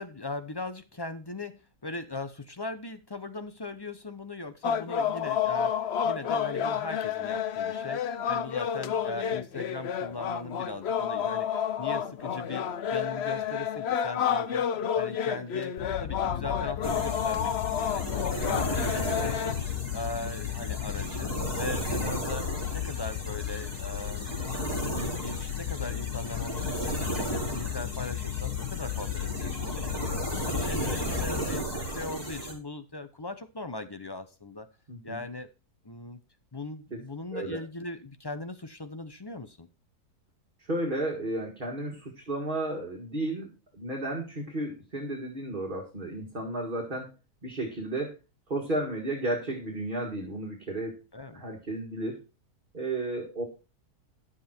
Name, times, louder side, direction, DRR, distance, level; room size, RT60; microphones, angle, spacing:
voice 1, 0.0-11.5 11.8-14.7 14.9-17.5 17.8-21.3 21.6-24.2 24.9-34.7 35.0-35.5 35.8-36.2 36.5-39.7 51.1-51.4, left 2 dB, 30° left, 10 dB, 0.4 m, -39 dB
sound 1, 4.6-19.5, left 8 dB, 55° left, 0.8 m, -30 dB
sound 2, 15.8-31.4, left 14 dB, 75° left, 1.2 m, -35 dB
sound 3, 16.8-32.5, right 1 dB, 15° left, 4.3 m, -35 dB
voice 2, 34.9-35.2 36.9-37.0 37.3-37.6 40.6-47.1 47.4-48.2 48.5-51.0 51.3-52.2 52.7-53.4, right 1 dB, 30° right, 0 dB, 2.1 m, -33 dB
11.5 x 7.4 x 4.4 m, 0.30 s
omnidirectional pair, 1.7 m